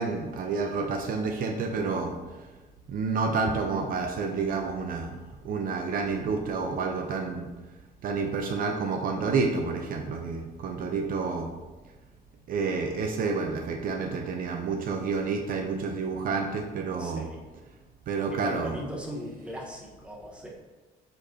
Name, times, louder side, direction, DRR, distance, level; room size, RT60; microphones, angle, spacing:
voice 1, 0.0-2.1 2.9-5.2 5.4-7.5 8.0-11.5 12.5-17.3 18.1-18.8, right 4 dB, 55° right, 3 dB, 0.7 m, -29 dB
voice 2, 17.0-17.4 18.3-20.5, equal, 5° right, -2 dB, 1.3 m, -39 dB
7.8 x 4.4 x 2.8 m, 1.2 s
cardioid pair, 110°, 17 cm